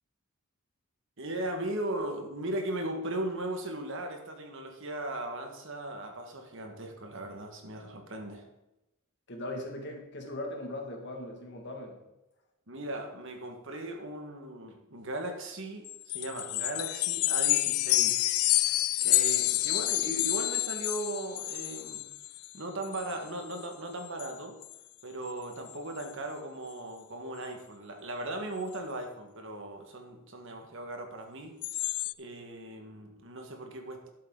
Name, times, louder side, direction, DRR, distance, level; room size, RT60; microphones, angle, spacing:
voice 1, 1.2-8.5 12.7-22.0 22.5-24.6 25.0-31.6 32.2-34.1, right 1 dB, 60° right, 4 dB, 1.8 m, -38 dB
voice 2, 9.3-12.0 19.5-19.6, left 1 dB, 55° left, 2 dB, 2.2 m, -39 dB
sound 1, 15.9-22.5 22.8-23.1 23.5-23.7 24.1-24.3 24.6-24.8 25.3-25.4 25.7-26.1 31.6-32.1, left 18 dB, 85° left, 0.4 m, -29 dB
11.5 x 8.1 x 4.0 m, 0.94 s
head